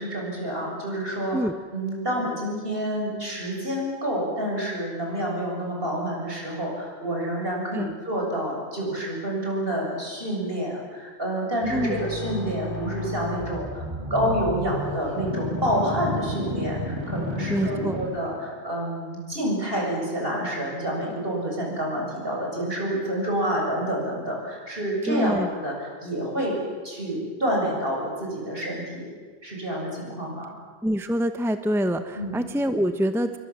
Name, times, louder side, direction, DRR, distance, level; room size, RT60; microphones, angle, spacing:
voice 1, 0.0-1.4 1.7-29.1 29.4-30.6 32.1-32.4, equal, 60° right, -1 dB, 7.7 m, -28 dB
sound 1, 11.6-18.6, left 1 dB, 25° right, 6.9 m, -32 dB
voice 2, 17.5-18.0 25.1-25.5 30.8-33.4, equal, ahead, 8 dB, 1.0 m, -25 dB
28.0 x 22.5 x 7.6 m, 1.5 s
omnidirectional pair, 1.1 m